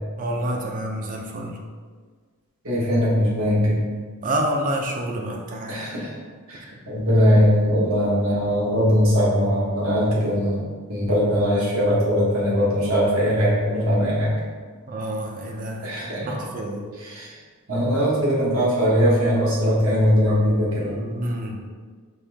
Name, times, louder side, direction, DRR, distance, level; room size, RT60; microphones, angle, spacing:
voice 1, 0.2-1.6 4.2-5.8 14.9-16.8 20.8-21.6, right 1 dB, 40° right, 1 dB, 0.5 m, -28 dB
voice 2, 2.6-3.8 5.7-6.1 6.5-10.6 10.9-14.3 15.8-16.4 17.0-17.3 17.7-21.0, equal, 70° right, -6 dB, 1.4 m, -20 dB
5.4 x 2.7 x 3.4 m, 1.5 s
head